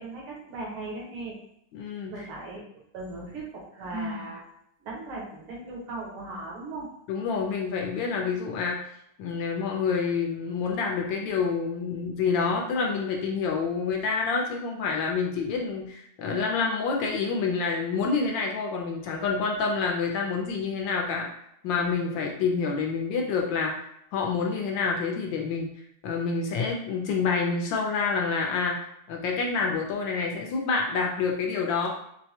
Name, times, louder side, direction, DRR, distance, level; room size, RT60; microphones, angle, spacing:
voice 1, 0.0-1.4 2.1-2.6 2.9-4.4 4.8-6.9, right 2 dB, 85° right, -3 dB, 2.0 m, -38 dB
voice 2, 1.7-2.3 7.1-8.8 9.2-21.3 21.6-23.7 24.1-25.7 26.0-28.8 29.1-31.9, left 5 dB, 70° left, 0 dB, 1.3 m, -27 dB
Sigh, 3.7-4.4, equal, 55° right, 0.4 m, -36 dB
4.5 x 2.1 x 2.8 m, 0.74 s
omnidirectional pair, 2.3 m